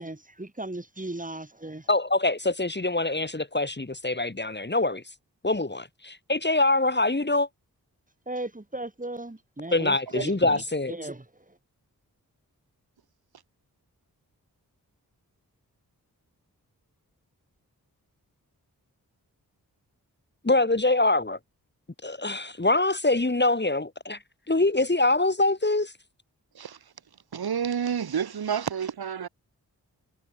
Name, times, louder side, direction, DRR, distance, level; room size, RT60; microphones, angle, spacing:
voice 1, 0.0-1.9 8.3-10.5 10.9-11.2, right 2 dB, 20° right, 5.0 m, -36 dB
voice 2, 1.9-5.0 5.4-7.5 9.7-10.9 20.4-21.4 22.0-24.2 24.5-25.9, left 2 dB, 30° left, 3.5 m, -24 dB
voice 3, 10.1-10.6 26.5-26.9 27.3-29.3, right 7 dB, 85° right, 2.1 m, -30 dB
cardioid pair, 45°, 37 cm